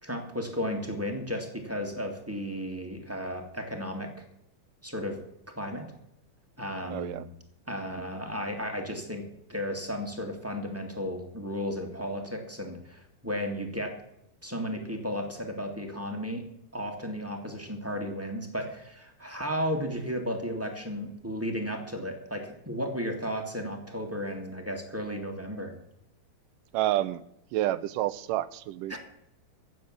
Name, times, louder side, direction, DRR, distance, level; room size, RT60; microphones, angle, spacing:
voice 1, 0.0-4.2 4.8-5.2 5.5-5.8 6.6-7.2 7.7-9.2 9.5-13.9 14.4-16.4 16.7-25.7 28.9-29.0, equal, 5° right, 1.5 m, -34 dB
voice 2, 6.9-7.3 7.9-8.0 26.7-27.2 27.5-29.0, right 14 dB, 90° right, 2.3 m, -29 dB
16.0 x 7.5 x 7.3 m
omnidirectional pair, 3.7 m